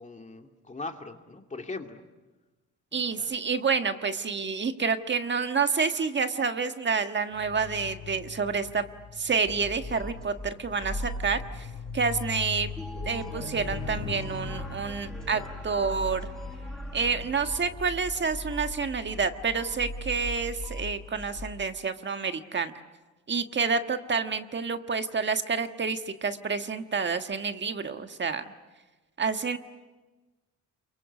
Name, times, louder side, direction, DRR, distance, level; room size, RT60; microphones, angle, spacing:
voice 1, 0.0-2.0 2.9-3.3, left 3 dB, 25° left, 4 dB, 2.5 m, -40 dB
voice 2, 2.9-8.8 9.2-11.7 11.9-12.7 13.0-16.3 16.9-22.8 23.3-28.4 29.2-29.6, right 5 dB, 35° right, 8 dB, 1.5 m, -28 dB
sound 1, 7.3-19.0 19.7-20.0, left 6 dB, 90° left, 3.3 m, -42 dB
sound 2, 9.4-21.5, left 1 dB, 5° left, 5.5 m, -39 dB
28.0 x 23.5 x 8.3 m, 1.2 s
cardioid pair, 90°, 30 cm